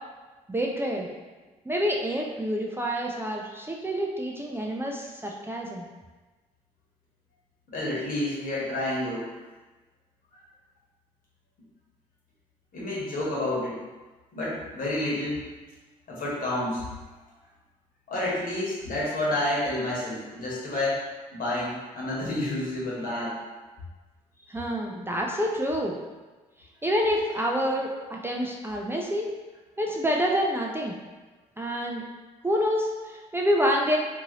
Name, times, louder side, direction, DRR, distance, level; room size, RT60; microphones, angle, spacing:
voice 1, 0.5-1.1 1.7-5.9 24.5-26.0 26.8-29.3 29.8-30.9 31.6-32.0 32.4-34.0, equal, 15° right, -1 dB, 0.4 m, -27 dB
voice 2, 7.7-9.3 10.3-10.4 12.7-13.8 14.3-15.5 16.1-16.8 18.1-21.0 21.3-23.4 24.4-24.6, left 1 dB, 55° left, -6 dB, 1.2 m, -29 dB
2.7 x 2.6 x 2.9 m, 1.2 s
hypercardioid pair, 45°, 17 cm